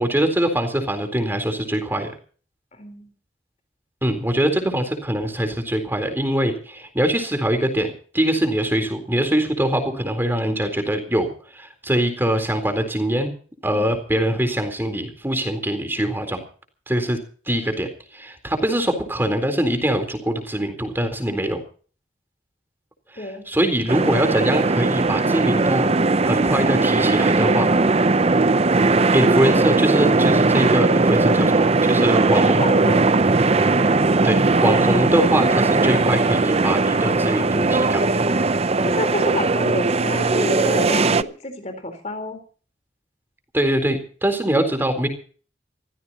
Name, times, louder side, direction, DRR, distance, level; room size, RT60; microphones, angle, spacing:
voice 1, 0.0-2.1 4.0-13.3 13.6-16.4 16.9-17.2 17.5-17.9 18.1-21.6 23.1-25.9 26.2-27.7 29.1-32.6 34.2-38.1 43.5-45.1, right 1 dB, 10° right, 6 dB, 3.9 m, -23 dB
voice 2, 2.7-3.1 13.7-13.9 23.2-23.4 32.6-33.1 38.8-42.4, left 2 dB, 40° left, 7 dB, 4.1 m, -29 dB
sound 1, 23.9-41.2, right 3 dB, 35° right, 0.7 m, -18 dB
27.0 x 16.0 x 3.0 m, 0.42 s
head